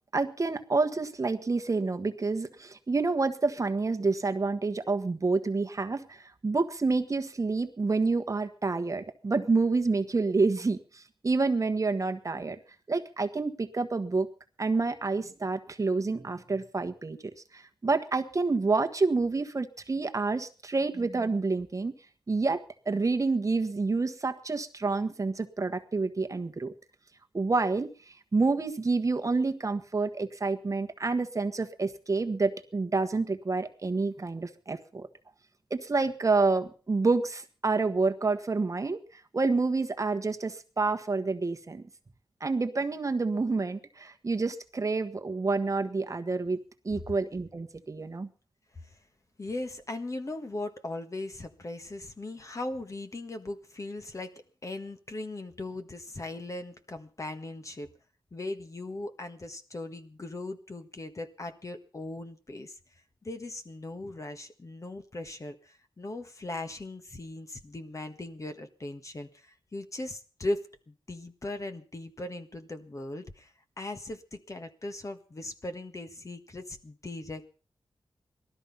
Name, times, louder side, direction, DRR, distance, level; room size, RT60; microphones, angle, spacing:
voice 1, 0.1-12.6 12.9-14.3 14.6-17.2 17.5-21.9 22.3-26.7 27.3-35.1 35.7-39.0 39.3-41.8 42.4-46.6 46.8-48.3, right 3 dB, 35° right, 7 dB, 1.3 m, -28 dB
voice 2, 49.4-57.9 58.3-62.8 63.2-77.4, left 2 dB, 35° left, 7 dB, 1.6 m, -39 dB
18.5 x 13.0 x 5.6 m, 0.39 s
wide cardioid pair, 120°, 9 cm